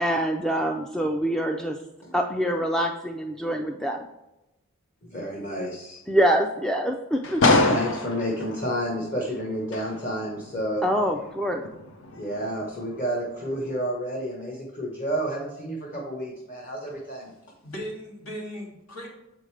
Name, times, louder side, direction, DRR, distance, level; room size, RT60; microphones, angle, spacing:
voice 1, 0.0-1.8 2.1-4.0 6.1-7.6 10.8-11.6, equal, 5° left, 3 dB, 0.3 m, -25 dB
voice 2, 5.0-6.0 7.4-10.8 12.1-17.3, equal, 40° left, -2 dB, 1.1 m, -30 dB
sound 1, 7.2-13.0 13.5-13.7, left 2 dB, 60° left, 0.7 m, -27 dB
voice 3, 17.6-19.1, equal, 80° left, -2 dB, 2.3 m, -37 dB
7.2 x 5.1 x 3.2 m, 0.94 s
head